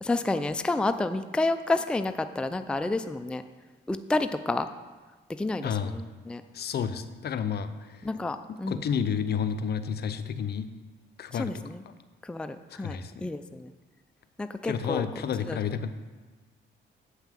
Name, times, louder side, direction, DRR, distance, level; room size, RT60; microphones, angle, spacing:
voice 1, 0.0-3.4 3.9-4.7 5.4-6.4 8.0-8.8 11.4-11.8 12.2-13.7 14.4-15.1 15.5-15.6, left 2 dB, 5° left, 9 dB, 0.4 m, -30 dB
voice 2, 5.6-6.0 6.5-8.1 8.5-10.7 11.2-11.7 12.7-13.3 14.6-15.9, left 7 dB, 55° left, 11 dB, 0.6 m, -31 dB
8.1 x 5.6 x 7.5 m, 1.3 s
cardioid pair, 90°, 20 cm